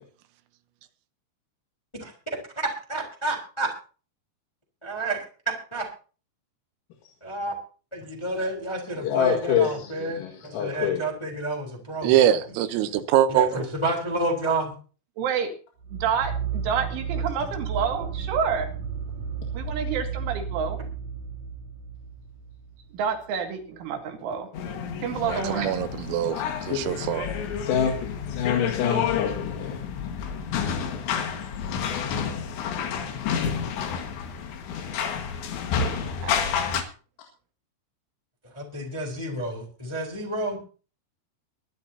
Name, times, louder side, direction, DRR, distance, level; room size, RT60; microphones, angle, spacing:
voice 1, 2.9-3.7 4.8-5.2 5.7-5.8 7.2-7.5 7.9-12.1 13.3-14.7 38.5-40.6, right 2 dB, 5° left, 0 dB, 2.6 m, -30 dB
voice 2, 9.0-11.0 26.7-27.0 27.3-27.4 27.6-27.9 28.3-29.8, left 8 dB, 90° left, 1 dB, 4.6 m, -26 dB
voice 3, 12.0-13.7 25.3-27.3, right 11 dB, 90° right, 10 dB, 3.7 m, -23 dB
voice 4, 15.2-15.5 15.9-18.7 19.5-20.8 22.9-24.5 25.0-25.8 36.2-36.4, right 7 dB, 75° right, 4 dB, 4.5 m, -28 dB
sound 1, 15.8-23.1, right 6 dB, 50° right, 3.2 m, -33 dB
sound 2, 24.5-36.8, left 7 dB, 65° left, 3.7 m, -30 dB
22.5 x 11.5 x 2.8 m, 0.37 s
omnidirectional pair, 5.8 m